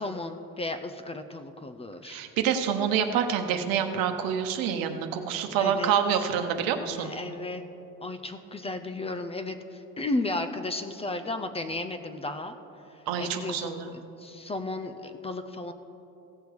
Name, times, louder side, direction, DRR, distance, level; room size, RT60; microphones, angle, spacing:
voice 1, 0.0-2.2 5.6-6.2 7.0-7.6 8.0-12.6 13.2-13.7 14.2-15.7, left 2 dB, 20° left, 8 dB, 0.4 m, -34 dB
voice 2, 2.0-7.1 13.1-13.9, right 8 dB, 80° right, 6 dB, 1.0 m, -27 dB
16.0 x 6.8 x 4.6 m, 3.0 s
cardioid pair, 125°, 34 cm